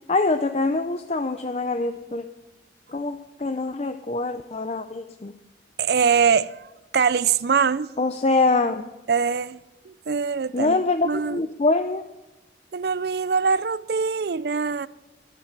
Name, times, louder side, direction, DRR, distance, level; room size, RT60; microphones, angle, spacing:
voice 1, 0.1-2.2 2.9-5.3 8.0-8.9 10.5-12.1, left 3 dB, 35° left, 0.5 m, -24 dB
voice 2, 5.8-6.5 6.9-7.9 9.1-9.6 9.9-10.8 11.0-11.4 12.7-14.9, right 6 dB, 60° right, 0.4 m, -22 dB
22.0 x 7.5 x 5.2 m
head